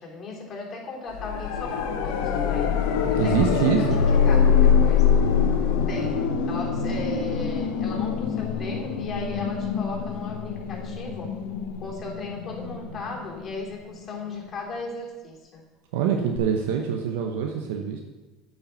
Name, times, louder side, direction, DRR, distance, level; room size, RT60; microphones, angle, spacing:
voice 1, 0.0-3.5 3.8-5.1 5.9-6.2 6.5-11.3 11.8-15.6, left 2 dB, 35° left, -1 dB, 3.2 m, -37 dB
sound 1, 1.1-14.0 16.4-16.5, left 7 dB, 75° left, 1.0 m, -24 dB
voice 2, 3.2-4.0 15.9-18.0, right 7 dB, 80° right, 2 dB, 1.0 m, -24 dB
9.0 x 5.5 x 7.0 m, 1.1 s
supercardioid pair, 90°, 0 cm